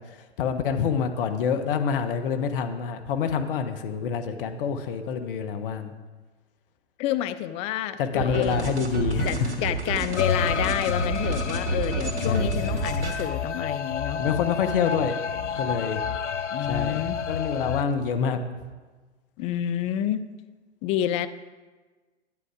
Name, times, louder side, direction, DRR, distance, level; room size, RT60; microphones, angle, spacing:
voice 1, 0.1-5.9 8.0-9.7 12.3-12.8 14.1-15.2 15.6-16.0 16.6-17.0 17.3-18.4, left 6 dB, 50° left, 8 dB, 1.3 m, -27 dB
voice 2, 7.0-8.7 9.2-14.2 16.5-17.2 19.4-20.2 20.8-21.3, left 11 dB, 20° left, 11 dB, 0.4 m, -29 dB
sound 1, 8.2-13.3, right 4 dB, 70° right, 2.3 m, -30 dB
sound 2, 10.2-17.8, left 7 dB, 85° left, 0.7 m, -29 dB
12.0 x 9.6 x 4.9 m, 1.3 s
figure-of-eight pair, 110°, 34 cm